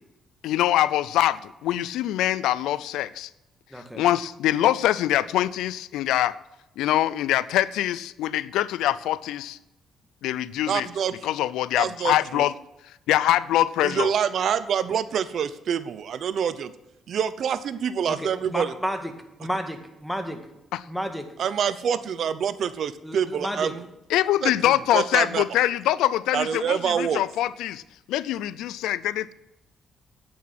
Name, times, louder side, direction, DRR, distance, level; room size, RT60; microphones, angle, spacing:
voice 1, 0.4-3.3 3.9-6.4 6.8-9.6 10.2-10.9 11.2-12.5 13.1-14.1 20.7-20.8 24.1-27.8 28.1-29.3, left 13 dB, 90° left, 18 dB, 0.4 m, -24 dB
voice 2, 3.7-4.0 18.1-19.1 19.4-20.4 20.9-21.3 23.0-23.7, equal, ahead, 6 dB, 1.8 m, -31 dB
voice 3, 10.7-11.1 11.8-12.4 13.8-16.7 17.1-18.7 21.4-23.9 24.4-25.4 26.3-27.3, right 8 dB, 65° right, 14 dB, 0.7 m, -26 dB
9.5 x 9.3 x 6.0 m, 0.93 s
cardioid pair, 90°, 0 cm